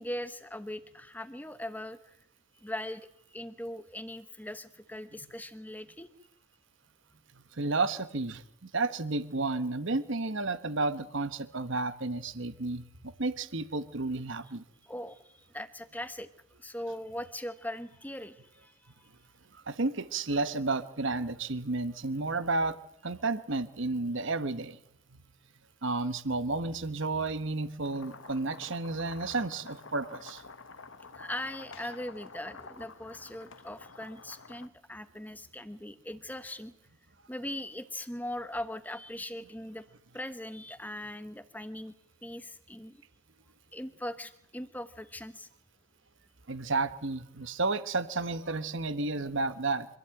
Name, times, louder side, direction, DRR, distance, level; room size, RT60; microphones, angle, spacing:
voice 1, 0.0-2.2 2.6-6.1 14.8-16.3 16.6-19.1 31.1-36.7 37.3-39.8 40.1-41.9 42.2-43.0 43.7-45.5, left 1 dB, 5° left, 11 dB, 1.2 m, -40 dB
voice 2, 7.5-14.6 19.7-22.8 23.0-24.8 25.1-25.2 25.8-30.4 46.5-49.9, right 3 dB, 55° right, 13 dB, 1.2 m, -32 dB
sound 1, 27.8-34.7, left 4 dB, 60° left, 1.2 m, -49 dB
25.5 x 15.5 x 9.0 m, 0.77 s
head